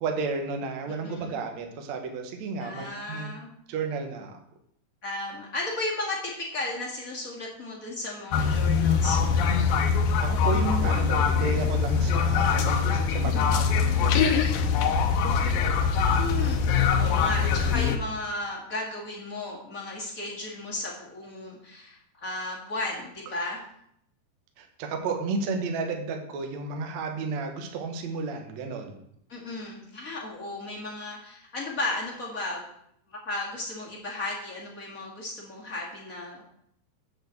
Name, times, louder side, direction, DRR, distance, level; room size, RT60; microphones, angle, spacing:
voice 1, 0.0-3.3 3.7-4.3 10.2-14.4 24.6-29.0, right 4 dB, 60° right, 4 dB, 1.9 m, -32 dB
voice 2, 0.9-1.4 2.6-3.5 5.0-9.4 15.1-15.4 16.2-23.6 29.3-32.6 33.1-36.4, left 2 dB, 30° left, -3 dB, 1.7 m, -35 dB
sound 1, 8.3-18.0, left 6 dB, 70° left, 2.3 m, -23 dB
7.6 x 7.2 x 7.9 m, 0.71 s
omnidirectional pair, 5.0 m